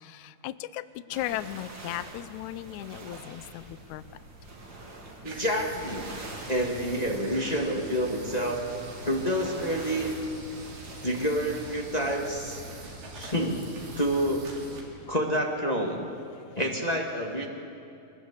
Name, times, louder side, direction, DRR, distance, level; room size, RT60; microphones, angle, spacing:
voice 1, 0.1-0.8 1.1-3.6 3.9-4.0, left 14 dB, 75° left, 13 dB, 1.8 m, -36 dB
sound 1, 1.1-14.0, right 2 dB, 35° right, 2.8 m, -46 dB
voice 2, 5.2-6.1 6.5-8.6 9.0-10.1 11.0-12.6 13.1-13.6 14.0-14.4 15.1-16.1 16.5-17.5, equal, 20° left, 0 dB, 1.1 m, -28 dB
sound 2, 5.2-14.8, right 2 dB, 90° right, 4.5 m, -44 dB
23.5 x 20.0 x 8.2 m, 2.8 s
omnidirectional pair, 3.8 m